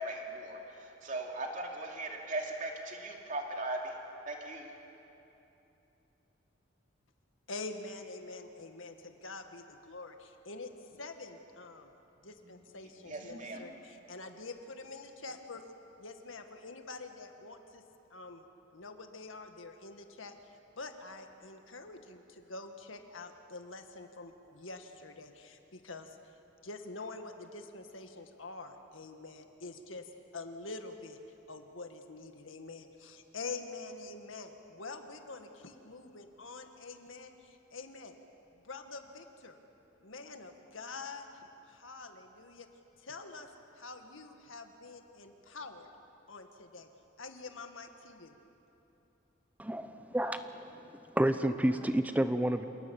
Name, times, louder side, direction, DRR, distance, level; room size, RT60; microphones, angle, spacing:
voice 1, 0.0-3.9 4.3-4.7 13.0-13.7, right 2 dB, 40° right, 1 dB, 2.7 m, -39 dB
voice 2, 7.5-11.9 12.2-15.6 16.0-17.8 18.1-18.4 18.7-20.4 20.8-26.2 26.6-30.1 30.3-31.2 31.5-38.2 38.6-39.6 40.0-41.3 41.7-42.7 43.0-43.5 43.7-45.9 46.3-46.9 47.2-48.4, left 3 dB, 85° left, 6 dB, 1.8 m, -46 dB
voice 3, 49.6-50.5 51.2-52.7, right 1 dB, 10° right, 9 dB, 0.8 m, -29 dB
28.0 x 19.0 x 7.2 m, 3.0 s
head